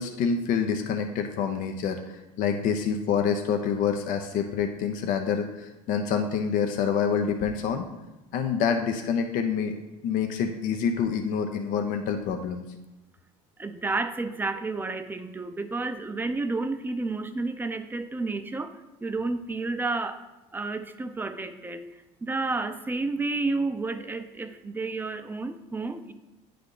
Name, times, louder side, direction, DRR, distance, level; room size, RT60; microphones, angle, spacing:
voice 1, 0.0-7.9 8.3-9.7 10.0-12.6, left 6 dB, 65° left, 5 dB, 0.6 m, -27 dB
voice 2, 13.6-20.2 20.5-21.8 22.2-26.1, right 3 dB, 15° right, 8 dB, 0.5 m, -31 dB
9.5 x 3.4 x 3.8 m, 1.0 s
supercardioid pair, 100°, 15 cm